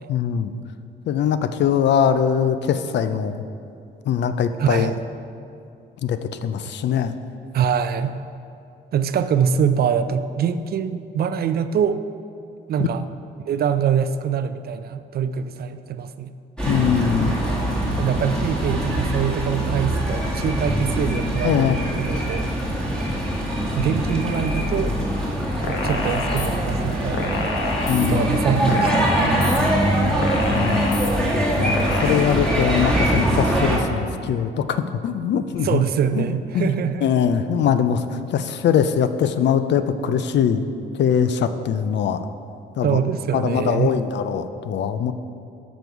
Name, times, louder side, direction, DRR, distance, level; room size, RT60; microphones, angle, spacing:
voice 1, 0.1-0.5 1.1-3.4 4.1-4.9 6.0-7.1 16.7-17.4 21.4-21.8 27.9-28.3 30.5-31.0 31.6-35.8 36.2-36.3 36.5-36.7 37.0-38.0 38.3-40.7 41.0-42.2 42.8-43.0 43.3-45.1, left 8 dB, 65° left, 11 dB, 0.5 m, -22 dB
voice 2, 4.6-5.0 7.5-8.2 8.9-12.0 12.7-13.1 13.4-16.3 17.3-17.4 18.0-22.5 23.7-24.9 25.7-27.4 28.0-29.1 35.6-37.1 42.8-43.9, right 7 dB, 50° right, 11 dB, 0.4 m, -24 dB
sound 1, 16.6-33.8, right 1 dB, 5° left, 1.7 m, -23 dB
sound 2, 25.6-26.5 27.1-28.1 28.7-29.6 30.2-31.1 31.7-32.1, left 3 dB, 80° left, 1.0 m, -27 dB
6.7 x 6.1 x 4.7 m, 2.5 s
cardioid pair, 90°, 20 cm